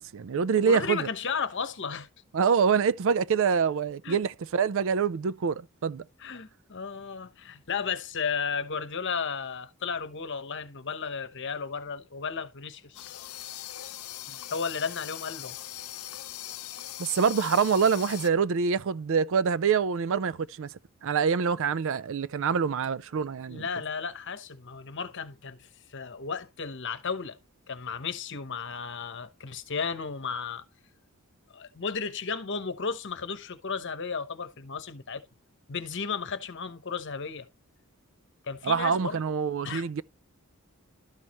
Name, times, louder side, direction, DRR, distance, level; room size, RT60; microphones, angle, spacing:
voice 1, 0.0-1.1 2.3-6.0 17.0-20.7 21.0-23.6 38.6-40.0, right 6 dB, 60° right, 0.4 m, -25 dB
voice 2, 0.6-2.1 4.0-4.2 6.2-13.1 14.5-15.6 23.5-27.4 27.7-30.6 31.5-35.2 35.7-37.5 38.4-39.2 39.6-39.9, left 5 dB, 55° left, 1.0 m, -34 dB
sound 1, 12.9-18.3, left 13 dB, 80° left, 0.6 m, -40 dB
12.0 x 6.3 x 3.0 m
head